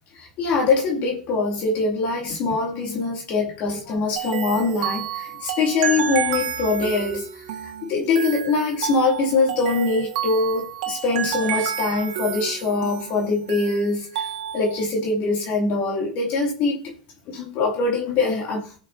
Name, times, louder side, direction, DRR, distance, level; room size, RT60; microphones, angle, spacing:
voice 1, 0.1-16.9 17.3-18.8, left 3 dB, 45° left, 2.4 m, -23 dB
sound 1, 4.2-14.8, right 9 dB, 70° right, 1.5 m, -30 dB
17.0 x 6.3 x 2.6 m
supercardioid pair, 130°, 4 cm